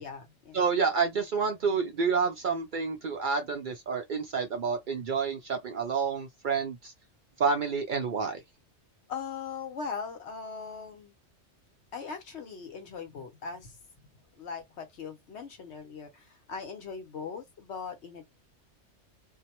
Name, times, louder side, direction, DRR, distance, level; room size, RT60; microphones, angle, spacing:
voice 1, 0.0-0.6 9.1-11.1 11.9-13.7 14.4-18.2, left 5 dB, 70° left, 1.1 m, -40 dB
voice 2, 0.5-6.9 7.4-8.4, right 5 dB, 55° right, 0.6 m, -29 dB
2.6 x 2.0 x 2.9 m
omnidirectional pair, 1.2 m